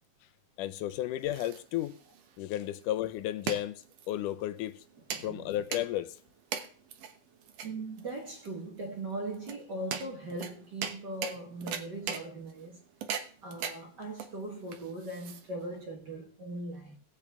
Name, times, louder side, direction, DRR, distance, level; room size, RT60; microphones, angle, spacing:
voice 1, 0.6-2.0 2.4-4.8 5.2-6.2, left 13 dB, 85° left, 2.2 m, -33 dB
sound 1, 0.9-15.8, right 7 dB, 65° right, 2.0 m, -41 dB
voice 2, 5.1-5.5 7.6-12.8 13.4-17.0, right 2 dB, 45° right, 1.7 m, -39 dB
17.0 x 8.3 x 3.6 m
omnidirectional pair, 3.6 m